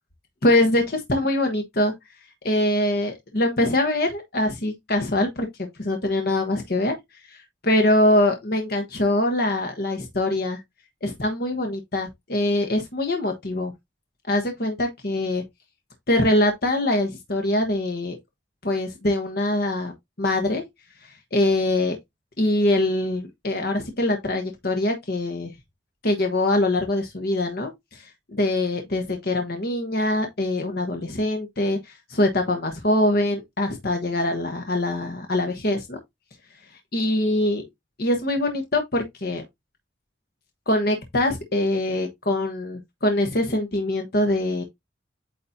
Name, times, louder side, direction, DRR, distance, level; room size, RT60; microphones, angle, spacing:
voice 1, 0.4-1.9 2.4-6.9 7.3-7.4 7.6-10.6 11.0-13.7 14.3-15.4 16.1-18.2 18.6-19.9 20.2-20.6 21.3-22.0 22.4-25.5 26.0-36.0 36.9-37.6 38.0-39.4 40.7-44.6, left 1 dB, 55° left, 1.2 m, -23 dB
8.7 x 4.2 x 2.7 m
head